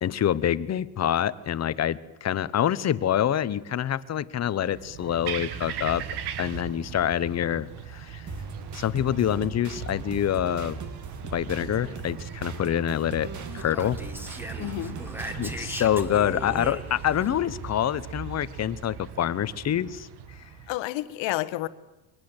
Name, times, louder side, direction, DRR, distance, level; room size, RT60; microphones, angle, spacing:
voice 1, 0.0-6.0 6.4-8.3 8.7-10.8 11.3-14.0 15.3-20.1, left 10 dB, 35° left, 1.0 m, -26 dB
sound 1, 4.7-20.7, right 7 dB, 55° right, 1.8 m, -39 dB
sound 2, 8.3-15.7, right 4 dB, 40° right, 2.4 m, -40 dB
Speech, 13.4-17.3, equal, 5° right, 2.0 m, -39 dB
voice 2, 14.6-15.0 15.6-15.9 20.7-21.7, left 17 dB, 70° left, 1.4 m, -31 dB
24.0 x 19.5 x 8.1 m
cardioid pair, 125°, 47 cm